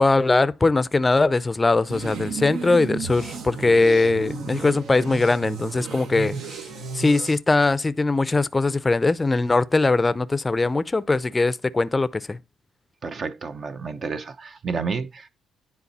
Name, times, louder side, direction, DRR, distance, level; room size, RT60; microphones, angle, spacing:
voice 1, 0.0-6.7 6.9-12.4, left 3 dB, 20° left, 0.5 m, -21 dB
sound 1, 1.9-7.4, right 5 dB, 75° right, 1.5 m, -33 dB
voice 2, 13.0-15.3, right 5 dB, 45° right, 0.8 m, -30 dB
9.9 x 4.1 x 4.1 m
cardioid pair, 90°, 0 cm